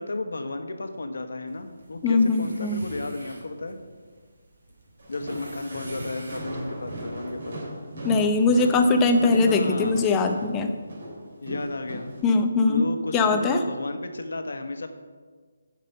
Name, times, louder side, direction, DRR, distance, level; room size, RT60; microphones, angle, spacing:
voice 1, 0.0-3.8 5.1-7.6 9.2-10.0 11.4-12.1 12.6-14.9, left 2 dB, 80° left, 7 dB, 1.1 m, -33 dB
sound 1, 1.5-6.6, right 1 dB, 70° right, 3.0 m, -46 dB
voice 2, 2.0-2.8 8.0-10.7 12.2-12.8 13.1-13.6, left 3 dB, 10° left, 5 dB, 0.6 m, -21 dB
Walk footsteps, 5.0-12.2, equal, 55° right, 3.1 m, -37 dB
11.0 x 5.3 x 5.5 m, 1.5 s
hypercardioid pair, 170°, 0 cm